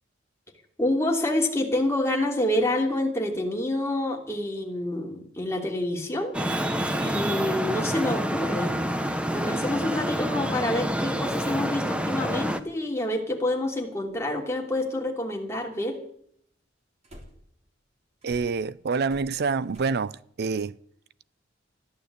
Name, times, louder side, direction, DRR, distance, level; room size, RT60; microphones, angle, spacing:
voice 1, 0.8-6.3 7.0-8.7 9.3-16.0, left 1 dB, 15° left, 2.9 m, -27 dB
Traffic noise roadway noise, 6.3-12.6, equal, 5° right, 1.0 m, -27 dB
sound 1, 14.1-14.2 17.0-17.6 18.2-19.8, equal, 35° right, 3.4 m, -48 dB
voice 2, 18.2-20.8, right 4 dB, 60° right, 0.5 m, -27 dB
14.5 x 11.0 x 8.3 m
head